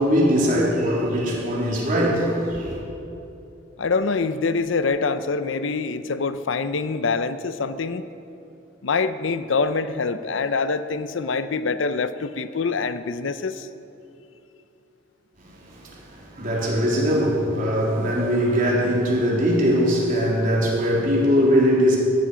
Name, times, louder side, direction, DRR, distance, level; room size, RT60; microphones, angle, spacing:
voice 1, 0.0-2.8 15.5-22.0, equal, 45° right, -4 dB, 3.6 m, -21 dB
voice 2, 3.8-8.1 8.8-13.7, left 4 dB, 75° left, 12 dB, 0.6 m, -25 dB
18.0 x 14.5 x 5.0 m, 2.8 s
head